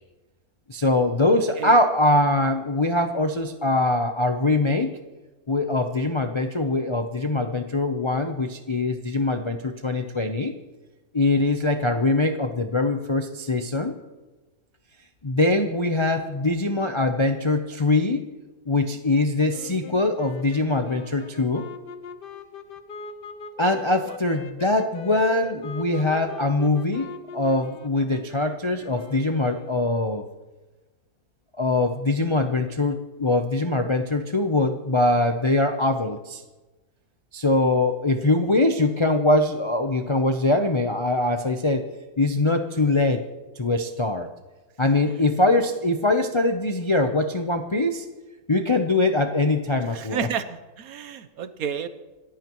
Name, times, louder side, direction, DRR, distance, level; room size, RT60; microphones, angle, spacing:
voice 1, 0.7-4.9 5.5-10.6 11.1-13.9 15.2-18.2 18.7-21.7 23.6-30.2 31.6-36.4 37.3-41.9 42.2-43.2 43.6-44.3 44.8-48.1 48.5-50.3, left 2 dB, 40° left, 5 dB, 0.4 m, -22 dB
voice 2, 1.3-1.8 24.0-24.2 44.8-44.9 49.9-51.9, right 8 dB, 65° right, 12 dB, 1.1 m, -32 dB
sound 1, 19.5-30.0, left 5 dB, 85° left, 1.7 m, -41 dB
27.0 x 14.5 x 3.1 m, 1.2 s
omnidirectional pair, 1.8 m